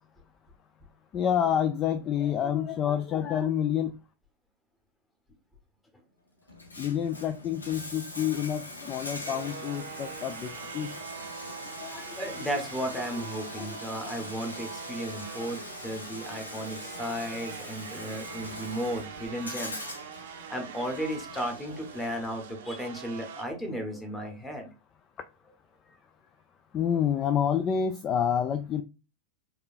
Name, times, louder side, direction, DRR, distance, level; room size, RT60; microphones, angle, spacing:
voice 1, 1.1-3.9 6.8-10.9 11.8-12.2 13.6-13.8 14.0-14.2 26.7-28.8, left 9 dB, 30° left, 9 dB, 0.3 m, -28 dB
Bathtub (filling or washing), 6.5-22.4, left 2 dB, 80° left, 0.6 m, -43 dB
sound 1, 9.2-23.4, right 7 dB, 55° right, 0.6 m, -43 dB
voice 2, 12.2-19.8 20.5-24.7, equal, 10° left, 3 dB, 1.0 m, -34 dB
4.8 x 2.3 x 2.5 m, 0.29 s
figure-of-eight pair, 90°, 0 cm